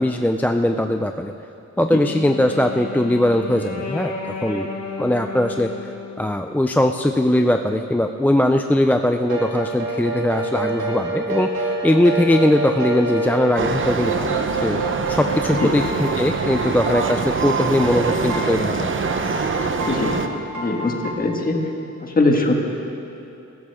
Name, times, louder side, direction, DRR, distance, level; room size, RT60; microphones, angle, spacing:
voice 1, 0.0-1.3 1.8-4.7 5.0-14.8 15.1-19.0, left 1 dB, 5° left, 5 dB, 0.3 m, -20 dB
Wind instrument woodwind instrument, 1.8-6.3, left 3 dB, 60° left, 2.0 m, -33 dB
sound 1, 9.2-21.1, right 1 dB, 70° right, 2.7 m, -28 dB
sound 2, 13.6-20.3, right 5 dB, 40° right, 0.8 m, -24 dB
voice 2, 19.9-21.6 22.0-22.7, left 2 dB, 30° left, 1 dB, 1.7 m, -21 dB
22.0 x 14.0 x 3.6 m, 2.8 s
wide cardioid pair, 135°, 30 cm